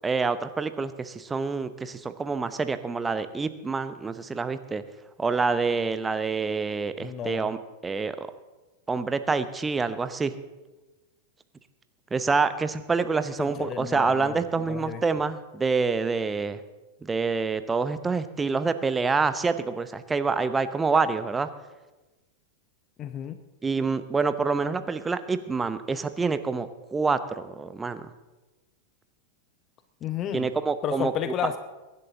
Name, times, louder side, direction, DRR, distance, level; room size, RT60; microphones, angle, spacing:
voice 1, 0.0-4.8 5.2-8.3 8.9-10.3 12.1-16.6 17.0-21.5 23.6-28.0 30.3-31.1, right 4 dB, 15° right, 12 dB, 0.8 m, -27 dB
voice 2, 7.0-7.5 13.4-14.4 14.7-15.0 23.0-23.4 30.0-30.5 30.8-31.6, left 9 dB, 30° left, 11 dB, 0.7 m, -32 dB
23.0 x 11.0 x 3.8 m, 1.1 s
figure-of-eight pair, 90°, 0 cm